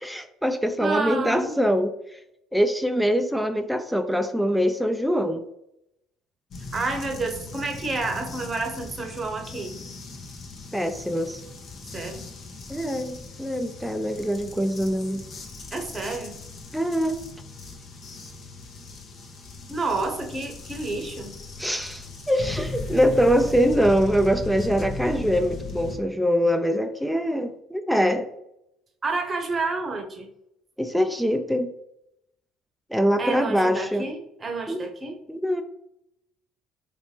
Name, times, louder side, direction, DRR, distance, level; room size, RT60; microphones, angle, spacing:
voice 1, 0.0-2.2 2.5-5.4 10.7-11.4 12.7-15.3 16.7-17.2 21.6-28.3 30.8-31.7 32.9-34.1 34.7-34.8 35.3-35.6, equal, ahead, 7 dB, 0.3 m, -23 dB
voice 2, 0.8-1.6 6.7-9.8 11.9-12.3 15.7-16.3 19.7-21.3 29.0-30.3 33.2-35.2, right 3 dB, 35° right, 3 dB, 0.8 m, -29 dB
sound 1, 6.5-26.0, left 3 dB, 55° left, 0.7 m, -38 dB
3.0 x 2.8 x 3.2 m, 0.80 s
hypercardioid pair, 65°, 0 cm